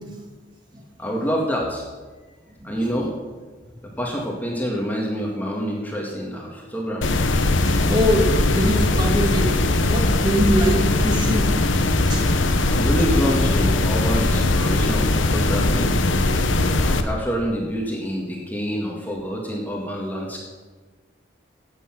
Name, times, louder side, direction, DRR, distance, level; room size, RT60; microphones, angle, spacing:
voice 1, 1.0-1.8 2.6-3.1 3.8-7.1 12.7-15.9 16.8-20.4, equal, 10° left, -2 dB, 1.9 m, -27 dB
sound 1, 7.0-17.0, left 2 dB, 90° left, 1.0 m, -20 dB
voice 2, 7.6-11.5 12.1-12.2, equal, 25° right, 0 dB, 2.2 m, -23 dB
16.5 x 8.4 x 6.0 m, 1.4 s
head